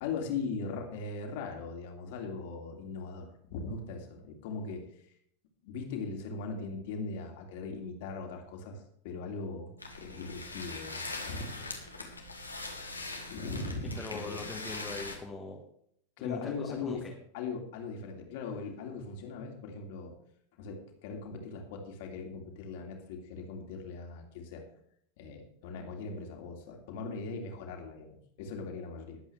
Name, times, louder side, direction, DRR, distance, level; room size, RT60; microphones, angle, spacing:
voice 1, 0.0-4.8 5.6-9.7 10.0-11.7 13.3-14.5 16.2-17.1 17.3-20.1 20.6-24.6 25.2-29.2, left 4 dB, 50° left, 3 dB, 2.7 m, -39 dB
sound 1, 9.8-15.2, left 3 dB, 85° left, 2.0 m, -41 dB
voice 2, 14.0-15.6 16.2-17.1, left 3 dB, 15° left, -1 dB, 1.7 m, -41 dB
21.0 x 8.1 x 3.3 m, 0.68 s
figure-of-eight pair, 90°, 0 cm